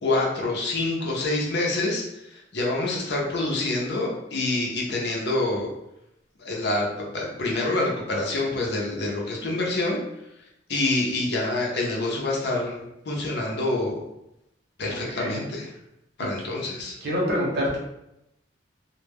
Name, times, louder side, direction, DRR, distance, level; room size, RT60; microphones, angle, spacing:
voice 1, 0.0-2.0 2.5-5.7 6.4-10.0 10.7-14.0 14.8-15.7 16.2-16.9, left 2 dB, 65° left, -2 dB, 0.6 m, -26 dB
voice 2, 14.9-15.4 17.0-17.8, equal, 60° right, -3 dB, 0.8 m, -27 dB
2.2 x 2.1 x 3.3 m, 0.85 s
head